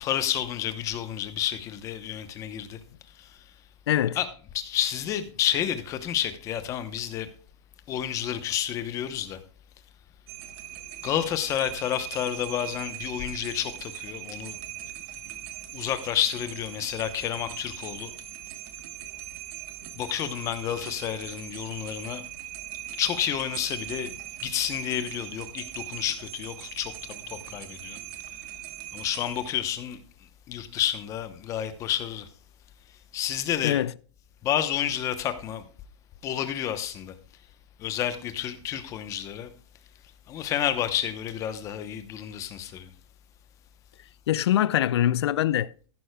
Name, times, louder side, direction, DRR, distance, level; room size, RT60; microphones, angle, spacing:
voice 1, 0.0-2.8 3.2-3.3 4.1-7.3 7.9-9.4 11.0-14.6 15.7-18.1 20.0-22.2 23.0-24.1 24.4-28.0 28.9-30.0 30.5-32.3 33.1-33.8 34.4-35.6 36.2-37.1 37.8-39.5 40.3-42.9, left 10 dB, 20° left, 0.9 m, -30 dB
voice 2, 3.9-4.2 33.6-33.9 44.3-45.7, left 12 dB, 65° left, 0.4 m, -23 dB
sound 1, 10.3-29.5, right 14 dB, 35° right, 1.1 m, -40 dB
13.5 x 11.5 x 2.3 m
hypercardioid pair, 155°, 15 cm